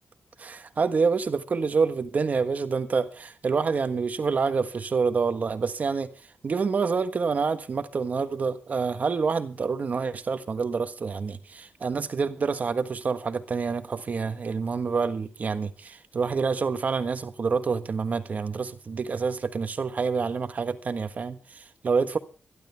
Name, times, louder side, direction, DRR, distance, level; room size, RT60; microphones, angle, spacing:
voice 1, 0.4-6.1 6.4-22.2, right 5 dB, 40° right, 1.4 m, -27 dB
25.5 x 12.0 x 3.5 m
wide cardioid pair, 180°, 4 cm